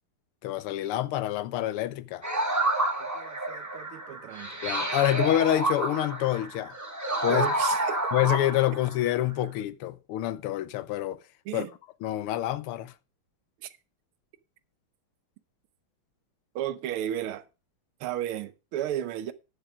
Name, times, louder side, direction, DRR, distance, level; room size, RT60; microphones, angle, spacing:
voice 1, 0.4-2.2 4.6-6.7 7.2-7.5 8.1-11.2 11.5-11.7 12.0-12.9, left 13 dB, 85° left, 1.6 m, -27 dB
sound 1, 2.2-9.1, right 1 dB, 10° right, 1.5 m, -29 dB
voice 2, 3.1-4.7 7.3-8.0 11.5-11.7 13.6-13.7 16.6-17.5 18.0-19.3, right 11 dB, 85° right, 1.6 m, -34 dB
9.9 x 7.1 x 4.9 m
omnidirectional pair, 2.4 m